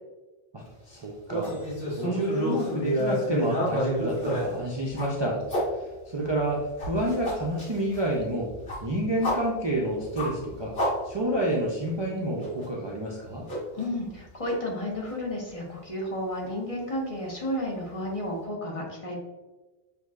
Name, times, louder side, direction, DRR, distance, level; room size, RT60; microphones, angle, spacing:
voice 1, 0.5-1.5 2.0-5.4 6.1-8.5 8.8-10.8 11.0-13.5, right 1 dB, 35° right, -4 dB, 0.5 m, -29 dB
sound 1, 1.3-5.6 6.2-11.5 11.9-12.0 12.4-12.7 13.5-14.2 14.5-14.6 15.0-15.1 16.4-16.5, equal, 75° left, 1.8 m, -30 dB
voice 2, 13.7-19.2, left 1 dB, 35° left, -3 dB, 1.0 m, -32 dB
6.3 x 2.8 x 2.4 m, 1.1 s
omnidirectional pair, 1.0 m